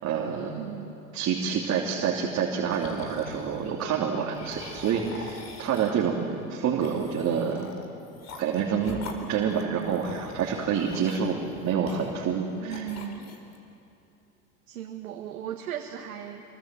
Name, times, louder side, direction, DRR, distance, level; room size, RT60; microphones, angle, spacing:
voice 1, 0.0-0.9 1.1-7.7 8.4-9.0 9.3-12.9, right 7 dB, 40° right, -1 dB, 3.1 m, -28 dB
voice 2, 0.6-1.0 12.6-13.3 14.7-16.4, right 10 dB, 75° right, 2 dB, 1.9 m, -37 dB
sound 1, 2.7-3.8 4.3-6.1 6.8-12.4 12.7-13.6, left 4 dB, 35° left, 4.1 m, -44 dB
26.5 x 23.0 x 7.6 m, 2.8 s
hypercardioid pair, 95°, 44 cm